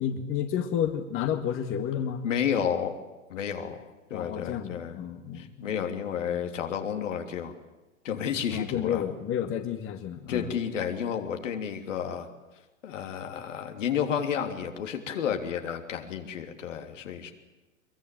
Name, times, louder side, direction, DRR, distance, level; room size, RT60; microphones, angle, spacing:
voice 1, 0.0-2.2 4.1-5.9 6.3-6.4 8.5-10.5, left 9 dB, 30° left, 6 dB, 2.0 m, -31 dB
voice 2, 2.2-2.9 3.3-3.8 4.1-5.0 5.3-7.5 8.0-9.0 10.3-12.3 12.8-17.3, left 8 dB, 70° left, 5 dB, 3.3 m, -31 dB
23.5 x 22.5 x 9.2 m, 1.1 s
hypercardioid pair, 105°, 39 cm